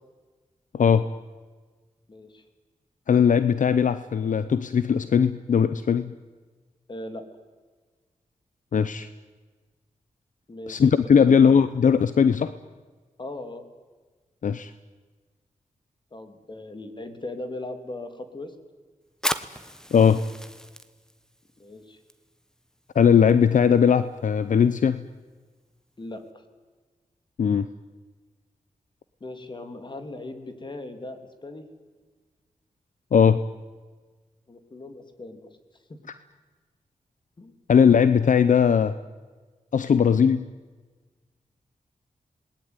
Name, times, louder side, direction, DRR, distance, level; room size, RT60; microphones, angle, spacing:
voice 1, 0.7-1.1 3.1-6.1 8.7-9.1 10.7-12.5 14.4-14.7 19.9-20.2 22.9-25.0 27.4-27.7 33.1-33.4 37.7-38.9 39.7-40.5, left 7 dB, 70° left, 13 dB, 0.8 m, -19 dB
voice 2, 2.1-2.4 6.9-7.2 10.5-10.8 11.1-11.4 13.2-13.7 16.1-18.5 21.6-22.0 26.0-26.2 29.2-31.7 34.5-35.5 35.9-36.0 37.4-37.5, left 2 dB, 35° left, 7 dB, 3.0 m, -38 dB
Fire, 19.1-26.3, equal, 5° left, 1.3 m, -38 dB
27.5 x 20.5 x 9.6 m, 1.4 s
wide cardioid pair, 105°, 14 cm